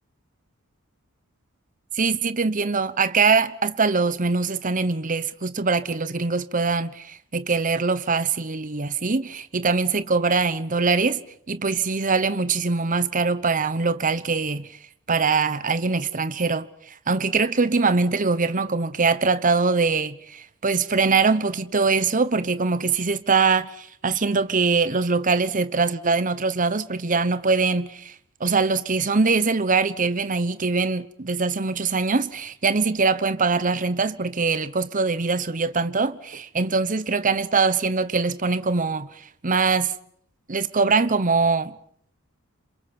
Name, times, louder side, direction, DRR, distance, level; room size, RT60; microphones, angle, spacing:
voice 1, 1.9-11.2 11.5-14.7 15.1-16.7 17.1-28.1 28.4-39.1 39.4-39.9 40.5-41.7, right 4 dB, 35° right, 1.0 m, -22 dB
28.5 x 26.5 x 6.0 m
head